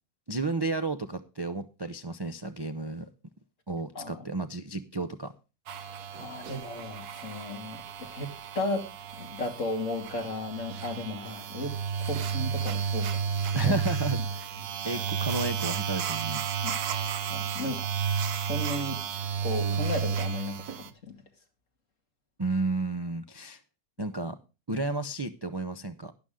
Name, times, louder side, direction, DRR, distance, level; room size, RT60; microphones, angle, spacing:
voice 1, 0.3-3.1 3.7-5.3 13.5-14.5 14.8-16.4 22.4-23.6 24.0-24.4 24.7-26.1, right 3 dB, 40° right, 0.3 m, -32 dB
sound 1, 5.7-20.9, right 7 dB, 80° right, 1.4 m, -32 dB
voice 2, 6.2-8.3 8.6-8.9 9.2-11.7 12.1-13.3 13.6-13.7 14.9-15.0 16.6-17.9 18.4-19.0 19.4-21.2, left 2 dB, 55° left, 2.6 m, -35 dB
12.0 x 11.0 x 3.7 m
omnidirectional pair, 1.6 m